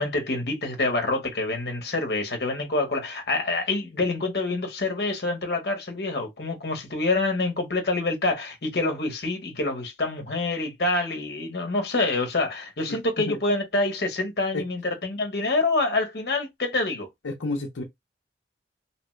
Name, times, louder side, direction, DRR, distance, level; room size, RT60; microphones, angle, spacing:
voice 1, 0.0-17.1, left 2 dB, 60° left, 0.9 m, -26 dB
voice 2, 12.9-13.4 14.5-14.7 17.2-17.8, left 2 dB, 80° left, 0.6 m, -31 dB
2.9 x 2.2 x 3.1 m
head